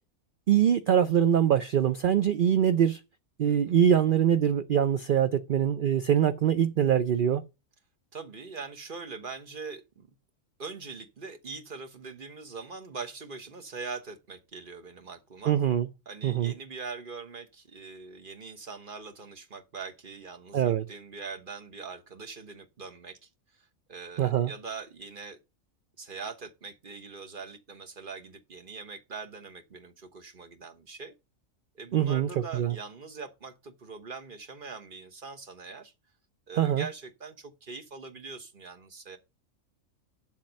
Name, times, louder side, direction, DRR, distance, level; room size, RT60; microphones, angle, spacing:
voice 1, 0.5-3.0 3.4-7.4 15.5-15.9 16.2-16.5 20.5-20.8 24.2-24.5 31.9-32.7 36.6-36.8, right 9 dB, 60° right, 0.5 m, -23 dB
voice 2, 3.4-3.8 8.1-10.1 10.6-15.6 16.0-25.4 26.0-31.1 31.7-35.9 36.5-39.2, right 4 dB, 40° right, 1.3 m, -42 dB
7.5 x 7.4 x 5.3 m
omnidirectional pair, 1.4 m